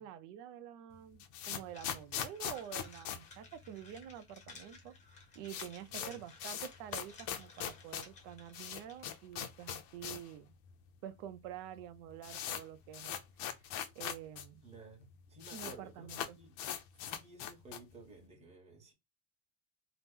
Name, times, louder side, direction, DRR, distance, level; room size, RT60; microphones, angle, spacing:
voice 1, 0.0-4.9 5.3-10.5 11.0-13.2 13.9-14.6 15.5-16.4, right 10 dB, 75° right, 0.6 m, -48 dB
sound 1, 0.9-4.2 4.4-4.5 4.8-4.9 5.2-10.3 10.6-10.7 11.4-11.5 11.8-14.5 14.7-14.8 15.0-15.8 16.1-18.0, left 10 dB, 60° left, 0.6 m, -41 dB
sound 2, 1.7-9.2, left 3 dB, 20° left, 0.7 m, -57 dB
voice 2, 5.9-6.3 14.6-16.6 17.0-18.9, right 3 dB, 15° right, 1.0 m, -54 dB
2.9 x 2.0 x 3.5 m
cardioid pair, 170°, 39 cm